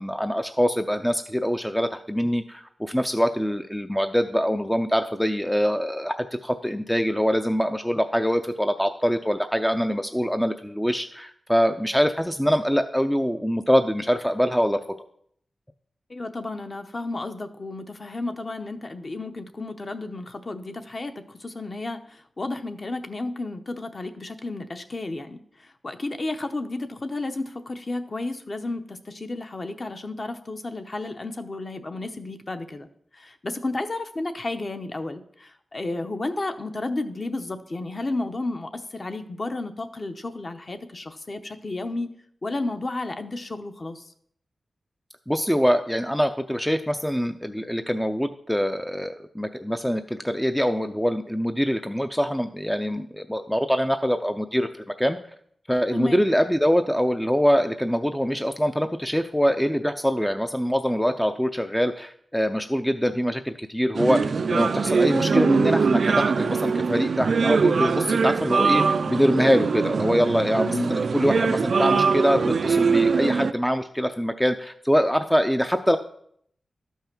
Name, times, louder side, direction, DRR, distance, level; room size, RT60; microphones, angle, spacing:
voice 1, 0.0-14.8 45.3-55.2 55.7-64.2 64.5-76.0, equal, 5° left, 7 dB, 0.4 m, -24 dB
voice 2, 16.1-21.1 21.4-25.4 25.8-32.9 33.1-42.1 42.4-44.0 55.9-56.2 70.7-70.9, left 2 dB, 35° left, 7 dB, 0.8 m, -32 dB
sound 1, 63.9-73.5, right 5 dB, 60° right, 0.3 m, -22 dB
12.5 x 5.6 x 5.9 m, 0.67 s
wide cardioid pair, 160°, 0 cm